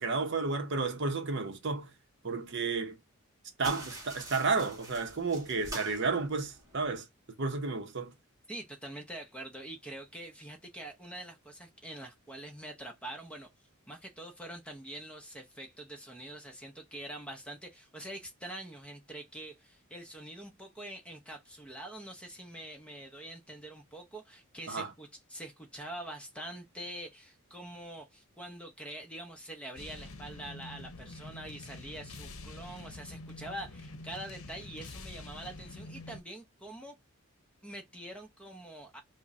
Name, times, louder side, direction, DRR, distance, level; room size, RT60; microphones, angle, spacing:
voice 1, 0.0-1.9 2.2-3.0 3.6-7.1 7.4-8.1 24.7-24.9, right 4 dB, 50° right, 0.7 m, -32 dB
sound 1, 3.6-7.0, right 1 dB, 15° right, 1.1 m, -46 dB
voice 2, 8.5-13.5 13.9-36.9 37.6-39.0, right 1 dB, 5° left, 0.7 m, -45 dB
sound 2, 29.8-36.2, left 2 dB, 65° left, 0.8 m, -46 dB
5.0 x 2.1 x 2.6 m
head